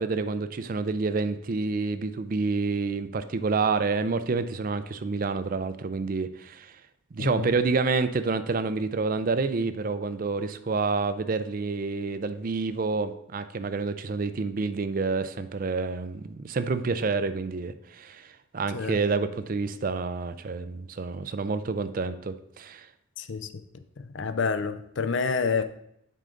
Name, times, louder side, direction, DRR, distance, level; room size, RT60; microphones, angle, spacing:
voice 1, 0.0-6.7 7.1-22.9, right 4 dB, 45° right, 0.4 m, -28 dB
voice 2, 7.2-7.5 18.7-19.0 23.2-23.5 24.0-25.6, left 5 dB, 65° left, 0.5 m, -28 dB
7.6 x 5.1 x 3.8 m
head